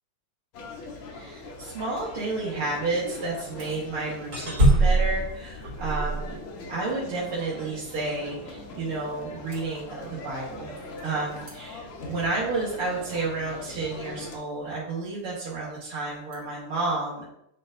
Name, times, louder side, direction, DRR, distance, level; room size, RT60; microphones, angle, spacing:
sound 1, 0.5-14.4, left 2 dB, 80° left, 1.8 m, -41 dB
voice 1, 1.1-6.4 6.7-10.7 11.0-17.2, right 3 dB, 85° right, -8 dB, 2.3 m, -31 dB
sound 2, 3.3-3.8 4.3-6.7 9.5-9.8 10.8-11.0 11.4-11.5 16.3-16.4, right 2 dB, 60° right, 2.6 m, -24 dB
8.9 x 4.4 x 2.5 m, 0.77 s
omnidirectional pair, 2.4 m